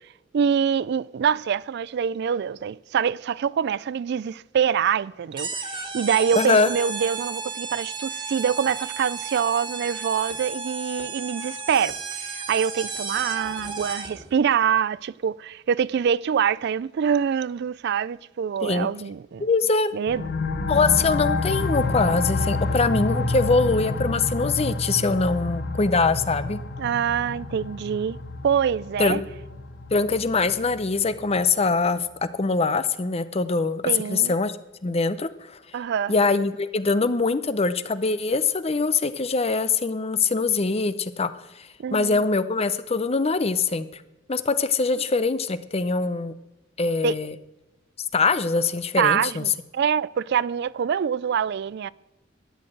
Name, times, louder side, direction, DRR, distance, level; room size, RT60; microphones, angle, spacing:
voice 1, 0.3-19.5 19.9-20.2 26.8-28.2 28.4-29.2 33.8-34.3 35.7-36.1 41.8-42.2 47.0-47.2 49.0-51.9, right 7 dB, 60° right, 0.3 m, -25 dB
sound 1, 5.4-14.3, right 4 dB, 25° right, 1.9 m, -33 dB
voice 2, 6.4-6.7 18.6-18.9 19.4-19.9 20.7-26.6 29.0-29.2 29.9-33.8 34.1-34.6 34.8-35.3 36.1-41.3 41.9-43.9 44.3-46.3 46.8-47.3 48.1-49.4, left 4 dB, 30° left, 0.7 m, -23 dB
sound 2, 20.1-31.4, left 3 dB, 55° left, 1.0 m, -29 dB
12.5 x 9.9 x 7.7 m
head